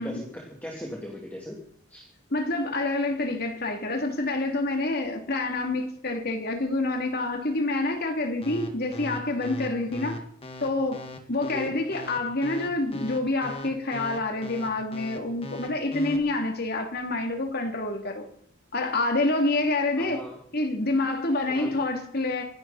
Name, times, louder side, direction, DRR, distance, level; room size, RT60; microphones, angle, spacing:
voice 1, 0.0-1.6 1.9-2.1 9.9-10.1 11.4-11.8 12.9-13.0 20.0-20.4 21.5-21.8, left 1 dB, 10° left, 3.2 m, -39 dB
voice 2, 2.3-10.2 10.6-18.3 18.7-20.2 20.5-22.4, left 2 dB, 50° left, 3.0 m, -27 dB
sound 1, 8.4-16.2, left 1 dB, 30° left, 2.0 m, -38 dB
27.5 x 12.0 x 4.3 m
head